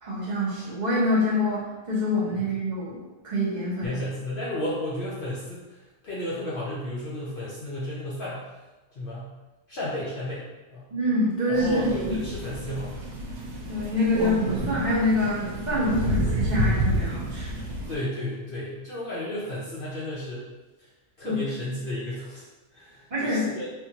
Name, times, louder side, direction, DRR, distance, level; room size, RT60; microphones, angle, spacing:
voice 1, 0.0-3.0 3.2-3.9 10.9-12.2 13.7-17.6 21.2-21.4 23.1-23.5, left 1 dB, 40° right, -7 dB, 0.9 m, -26 dB
voice 2, 3.8-5.8 6.0-8.5 9.0-9.3 9.7-10.5 10.7-10.9 11.5-13.0 17.9-20.5 21.2-22.5 22.7-23.7, left 1 dB, 50° left, -7 dB, 0.7 m, -33 dB
Crow, 11.5-17.9, right 1 dB, 90° right, 1.1 m, -29 dB
3.4 x 2.5 x 2.8 m, 1.1 s
omnidirectional pair, 1.4 m